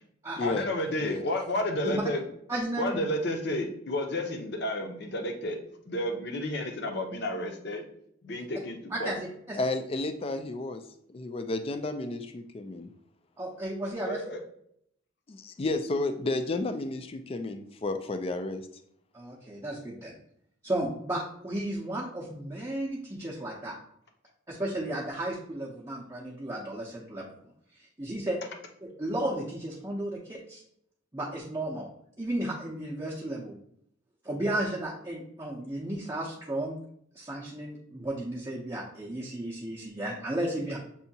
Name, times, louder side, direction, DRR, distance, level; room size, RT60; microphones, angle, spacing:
voice 1, 0.4-2.2 2.8-5.6 5.9-7.8 8.2-9.1 14.0-14.4, left 1 dB, 55° left, 4 dB, 0.7 m, -31 dB
voice 2, 2.5-3.1 8.9-9.2 9.5-9.6 13.4-14.2 19.1-20.2 20.6-23.7 24.5-27.3 27.8-28.4 28.8-30.6 31.1-31.9 32.2-33.5 34.2-36.8 37.2-40.8, right 1 dB, 15° right, -4 dB, 0.6 m, -34 dB
voice 3, 9.6-10.8 11.1-12.9 15.3-18.6, left 2 dB, 30° left, 8 dB, 0.3 m, -32 dB
6.8 x 2.7 x 2.7 m, 0.71 s
head